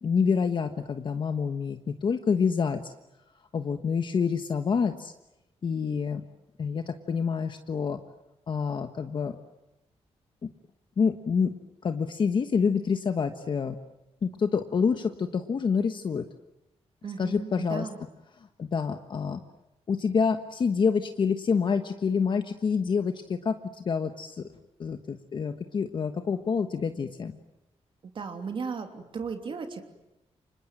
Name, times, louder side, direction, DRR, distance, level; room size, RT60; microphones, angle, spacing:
voice 1, 0.0-2.9 3.5-5.1 5.6-6.2 6.6-8.0 8.5-9.4 11.0-11.5 11.8-13.8 14.2-16.3 17.2-17.9 18.4-19.4 19.9-24.4 24.8-27.4, left 5 dB, 45° left, 7 dB, 1.4 m, -27 dB
voice 2, 17.0-18.0 28.0-29.8, right 5 dB, 50° right, 5 dB, 3.1 m, -36 dB
29.5 x 26.5 x 7.6 m, 0.92 s
wide cardioid pair, 160°, 11 cm